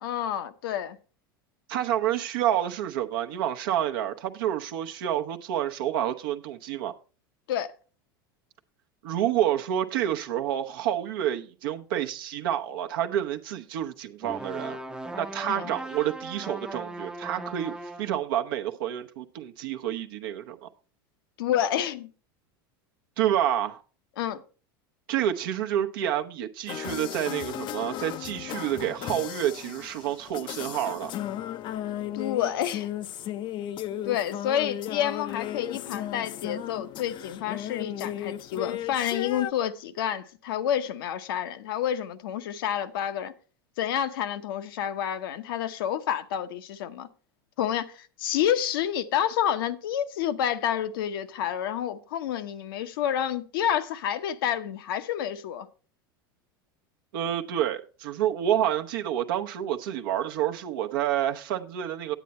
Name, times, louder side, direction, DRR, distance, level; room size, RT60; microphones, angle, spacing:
voice 1, 0.0-1.0 7.5-7.7 15.5-15.6 21.4-22.1 24.2-24.4 32.1-32.9 34.0-43.3 43.8-47.1 47.6-55.7, left 10 dB, 75° left, 0.8 m, -29 dB
voice 2, 1.7-6.9 9.0-14.8 15.2-20.7 23.2-23.8 25.1-31.1 57.1-62.1, right 11 dB, 70° right, 0.8 m, -28 dB
sound 1, 14.2-18.2, right 2 dB, 5° right, 0.6 m, -38 dB
sound 2, 26.7-39.5, left 12 dB, 40° left, 0.5 m, -35 dB
9.1 x 8.4 x 4.2 m
hypercardioid pair, 95°, 12 cm